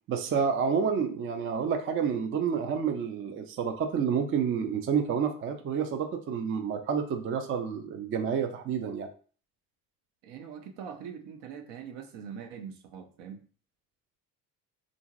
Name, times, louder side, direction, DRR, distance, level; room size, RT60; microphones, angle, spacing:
voice 1, 0.1-9.1, right 6 dB, 30° right, 6 dB, 0.4 m, -29 dB
voice 2, 10.2-13.4, right 7 dB, 65° right, 5 dB, 0.7 m, -42 dB
2.9 x 2.5 x 2.4 m, 0.41 s
hypercardioid pair, 55°, 44 cm